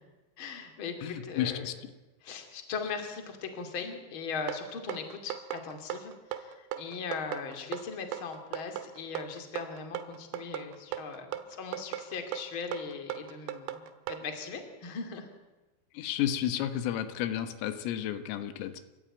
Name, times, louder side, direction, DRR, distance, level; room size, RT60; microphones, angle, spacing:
voice 1, 0.4-1.7 2.2-15.3, left 5 dB, 30° left, 5 dB, 2.8 m, -39 dB
voice 2, 1.0-1.7 15.9-18.8, left 11 dB, 90° left, 9 dB, 4.0 m, -32 dB
sound 1, 4.5-14.2, right 10 dB, 80° right, 3.9 m, -38 dB
30.0 x 14.5 x 9.1 m, 1.2 s
omnidirectional pair, 5.7 m